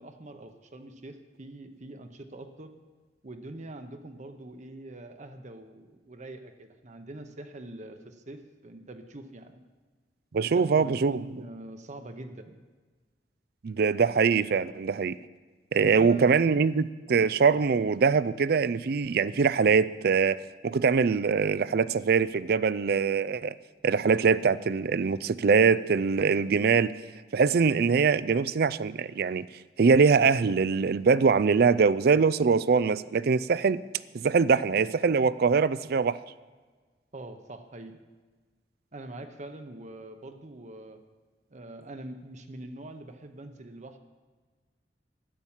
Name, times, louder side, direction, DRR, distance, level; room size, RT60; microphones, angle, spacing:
voice 1, 0.0-2.8 3.2-9.6 10.4-12.6 15.7-16.3 37.1-38.0 38.9-41.0 41.5-44.0, right 1 dB, 45° right, 0.9 m, -44 dB
voice 2, 10.3-11.2 13.6-15.2 15.7-23.5 23.8-26.9 27.3-29.5 29.8-33.8 34.1-36.2, right 5 dB, 60° right, 0.4 m, -23 dB
11.5 x 9.8 x 7.2 m
head